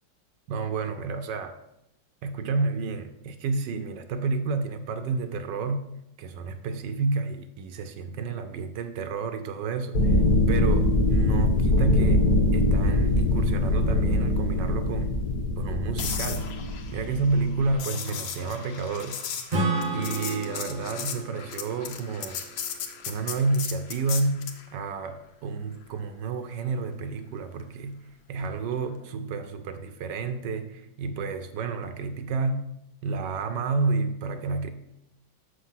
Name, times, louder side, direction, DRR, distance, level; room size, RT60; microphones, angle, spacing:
voice 1, 0.5-1.6 2.2-5.8 6.2-10.2 10.5-15.1 15.6-16.5 16.9-19.2 19.9-22.4 23.1-24.4 24.7-28.0 28.3-32.7 33.0-34.7, right 4 dB, 70° right, 9 dB, 1.1 m, -30 dB
sound 1, 9.9-17.7, left 2 dB, 50° left, 1.5 m, -23 dB
sound 2, 16.0-24.6 28.8-29.1, left 7 dB, 70° left, 1.5 m, -36 dB
Acoustic guitar / Strum, 19.5-23.1, right 2 dB, 45° right, 0.7 m, -32 dB
6.7 x 6.5 x 5.7 m, 0.82 s
omnidirectional pair, 2.4 m